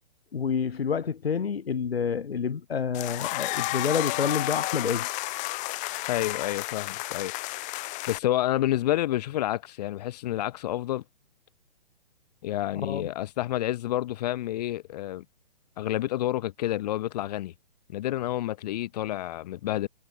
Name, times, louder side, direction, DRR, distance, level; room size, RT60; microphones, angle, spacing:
voice 1, 0.3-5.1 12.8-13.1, left 6 dB, 75° left, 1.0 m, -28 dB
sound 1, 2.9-8.2, left 22 dB, 25° left, 3.9 m, -32 dB
voice 2, 6.1-7.3 8.1-11.0 12.4-15.2 15.8-17.5 17.9-19.9, left 14 dB, 40° left, 4.2 m, -29 dB
figure-of-eight pair, 130°, 30 cm